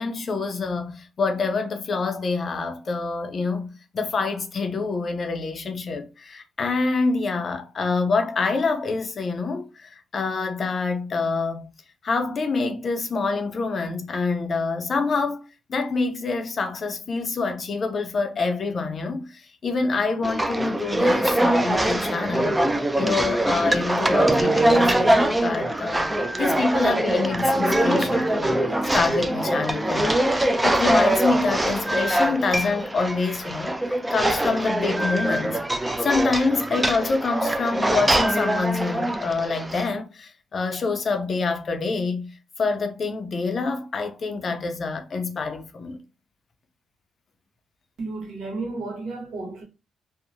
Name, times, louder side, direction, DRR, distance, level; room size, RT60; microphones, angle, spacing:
voice 1, 0.0-11.7 12.0-22.6 23.0-26.1 26.4-28.6 28.9-35.6 36.0-42.3 42.6-46.0, left 4 dB, 45° left, 0.5 m, -26 dB
sound 1, 20.2-39.9, right 1 dB, 10° right, 0.3 m, -23 dB
voice 2, 48.0-49.6, right 3 dB, 70° right, 0.9 m, -32 dB
2.7 x 2.0 x 2.6 m
cardioid pair, 90°, 0 cm